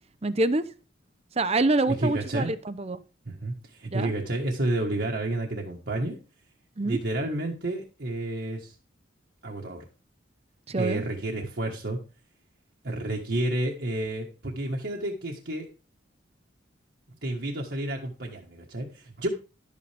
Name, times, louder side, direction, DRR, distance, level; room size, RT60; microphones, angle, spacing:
voice 1, 0.2-0.6 1.4-3.0 3.9-4.1 6.8-7.0 10.7-11.0, right 2 dB, 30° right, 13 dB, 0.7 m, -26 dB
voice 2, 1.9-2.5 3.2-6.2 6.8-8.7 9.4-9.8 10.8-12.0 12.8-15.7 17.2-19.3, right 1 dB, 60° right, -1 dB, 1.5 m, -30 dB
12.0 x 8.6 x 3.4 m, 0.34 s
head